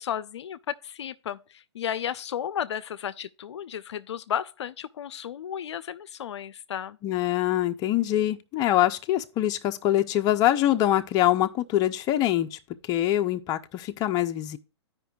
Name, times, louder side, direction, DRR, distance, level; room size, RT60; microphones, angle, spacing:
voice 1, 0.0-7.0, left 9 dB, 75° left, 0.4 m, -33 dB
voice 2, 7.0-12.6 12.9-14.6, left 13 dB, 25° left, 0.5 m, -24 dB
14.0 x 5.1 x 2.3 m
hypercardioid pair, 130°, 14 cm